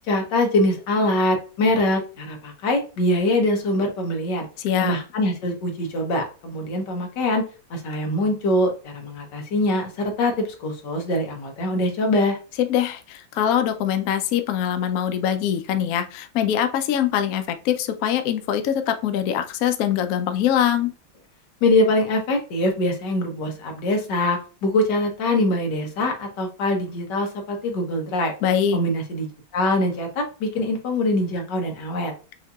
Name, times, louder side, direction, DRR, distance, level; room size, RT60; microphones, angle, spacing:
voice 1, 0.1-4.5 4.8-7.4 7.7-12.4 21.6-28.3 28.7-32.1, left 1 dB, 65° left, 3 dB, 1.6 m, -23 dB
voice 2, 4.6-5.0 12.6-20.9 28.4-28.8, left 9 dB, 90° left, 8 dB, 0.7 m, -23 dB
5.5 x 2.7 x 2.3 m, 0.35 s
omnidirectional pair, 2.2 m